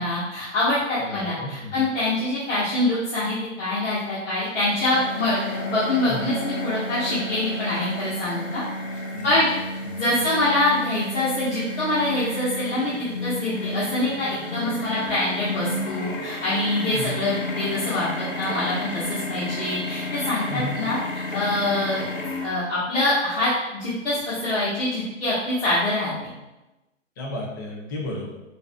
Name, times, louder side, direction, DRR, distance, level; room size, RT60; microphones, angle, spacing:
voice 1, 0.0-8.6 9.2-9.5 9.9-12.9 13.2-21.0 21.3-22.0 22.4-26.1, left 2 dB, 65° left, -9 dB, 1.3 m, -25 dB
voice 2, 1.0-1.9 6.1-6.3 9.1-9.3 9.8-10.0 16.9-17.2 20.5-20.8 27.2-28.3, left 1 dB, 15° left, -3 dB, 0.3 m, -33 dB
sound 1, 4.9-22.4, left 1 dB, 90° left, 1.2 m, -31 dB
4.6 x 2.6 x 2.3 m, 1.0 s
hypercardioid pair, 135°, 38 cm